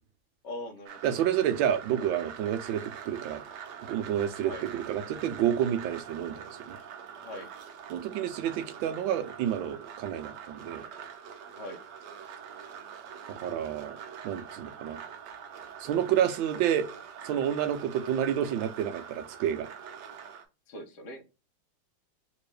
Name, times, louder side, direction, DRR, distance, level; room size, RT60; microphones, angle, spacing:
voice 1, 0.4-1.0 4.4-4.6 7.2-7.5 11.6-11.8 20.7-21.2, left 1 dB, 55° left, 0.7 m, -40 dB
sound 1, 0.9-20.4, right 7 dB, 70° right, 1.2 m, -45 dB
voice 2, 1.0-3.4 3.8-6.8 7.9-10.9 13.3-14.0 14.2-15.0 15.8-16.9 17.2-19.7, right 10 dB, 85° right, 1.4 m, -29 dB
3.4 x 3.0 x 3.2 m
omnidirectional pair, 2.1 m